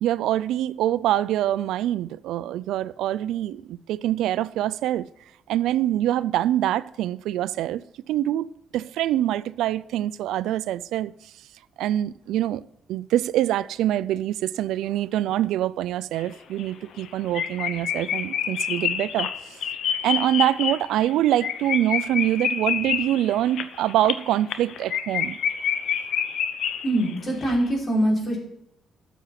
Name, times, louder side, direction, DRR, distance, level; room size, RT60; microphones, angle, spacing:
voice 1, 0.0-5.1 5.5-8.5 8.7-11.1 11.8-12.6 12.9-19.3 20.0-25.4, right 13 dB, 85° right, 0.4 m, -25 dB
sound 1, 16.2-16.3 16.6-16.7 17.0-17.1 17.3-27.2 27.4-27.6, left 8 dB, 70° left, 0.8 m, -28 dB
voice 2, 26.8-28.4, right 1 dB, 40° left, 5.0 m, -23 dB
13.0 x 7.1 x 5.8 m
cardioid pair, 90°, 0 cm